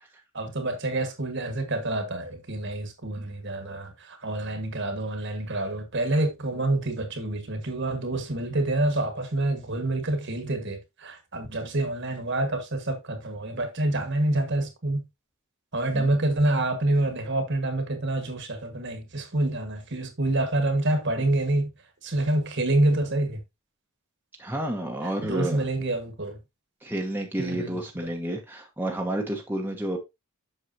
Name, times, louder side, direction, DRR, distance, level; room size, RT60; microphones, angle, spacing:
voice 1, 0.3-15.1 15.7-21.7 22.0-23.4 25.0-26.4 27.4-28.1, right 2 dB, 50° right, 1.6 m, -27 dB
voice 2, 24.4-25.6 26.8-30.0, right 1 dB, 10° right, 1.1 m, -30 dB
7.9 x 6.6 x 2.7 m
head